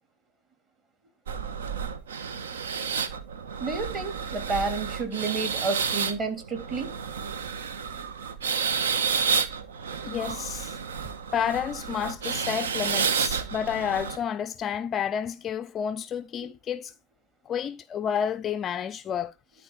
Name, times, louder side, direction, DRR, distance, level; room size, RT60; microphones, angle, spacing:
sound 1, 1.3-14.2, right 6 dB, 75° right, 1.2 m, -30 dB
voice 1, 3.6-6.9, right 4 dB, 20° right, 3.2 m, -30 dB
voice 2, 10.0-10.8 11.3-16.9 17.5-19.6, left 8 dB, 25° left, 0.4 m, -30 dB
12.0 x 4.3 x 4.0 m
hypercardioid pair, 110°, 0 cm